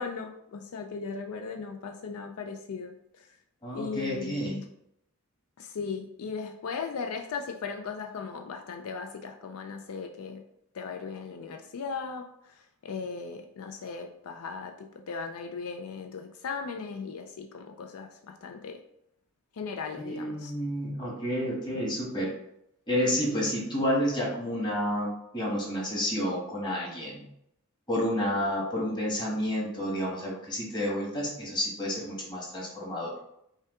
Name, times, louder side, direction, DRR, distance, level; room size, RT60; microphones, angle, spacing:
voice 1, 0.0-3.3 3.7-4.7 5.6-10.4 10.7-12.3 12.5-18.8 19.6-20.5, left 5 dB, 75° left, 5 dB, 0.4 m, -37 dB
voice 2, 3.6-4.5 20.0-22.3 22.9-27.3 27.9-33.1, equal, 20° left, -4 dB, 1.2 m, -30 dB
5.4 x 2.3 x 3.6 m, 0.76 s
head